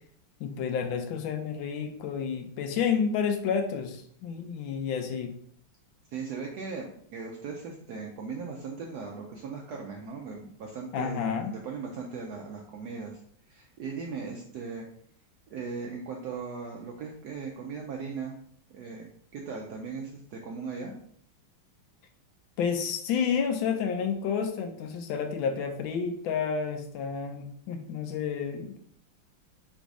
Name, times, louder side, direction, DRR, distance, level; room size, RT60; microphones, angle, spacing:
voice 1, 0.4-5.3 10.9-11.5 22.6-28.8, left 6 dB, 75° left, 6 dB, 1.3 m, -30 dB
voice 2, 6.1-13.2 13.5-14.9 15.5-18.4 18.7-19.1 19.3-20.9, right 5 dB, 75° right, 0 dB, 0.9 m, -38 dB
4.0 x 2.6 x 4.6 m, 0.65 s
omnidirectional pair, 2.2 m